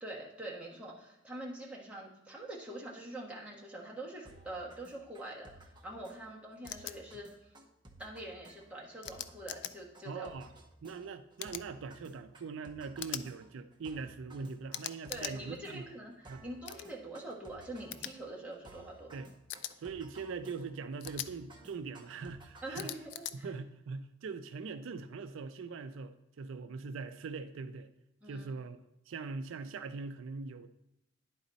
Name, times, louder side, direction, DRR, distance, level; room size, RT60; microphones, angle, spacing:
voice 1, 0.0-7.5 8.0-10.3 15.1-19.1 22.6-23.5 28.2-28.5, right 1 dB, 5° right, -4 dB, 1.3 m, -45 dB
sound 1, 4.3-23.4, right 1 dB, 25° right, 0.7 m, -57 dB
sound 2, 6.7-6.9 9.0-9.7 11.4-11.7 13.0-13.3 14.7-15.3 16.6-16.9 17.9-18.1 19.5-19.7 21.0-21.3 22.7-23.3, left 11 dB, 60° left, 0.3 m, -41 dB
voice 2, 10.0-10.5 10.8-15.8 16.3-16.4 19.1-19.3 19.8-22.9 23.3-27.9 28.3-28.8 29.1-30.7, right 4 dB, 80° right, 10 dB, 0.4 m, -42 dB
10.5 x 4.1 x 4.0 m, 0.89 s
head